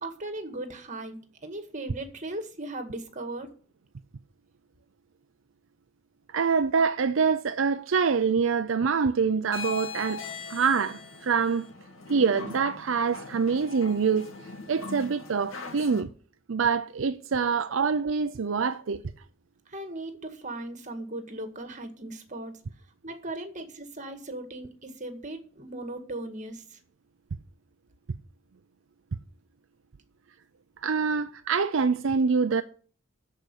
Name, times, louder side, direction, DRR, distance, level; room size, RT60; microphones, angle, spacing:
voice 1, 0.0-1.2 1.4-3.5 19.7-22.5 23.0-26.8, right 2 dB, 40° right, 1.9 m, -38 dB
voice 2, 6.3-10.2 10.5-11.7 12.1-14.3 14.7-16.1 16.5-19.0 30.8-32.6, right 5 dB, 70° right, 0.5 m, -25 dB
sound 1, 9.4-16.0, left 4 dB, 80° left, 2.5 m, -40 dB
13.0 x 5.1 x 8.3 m
head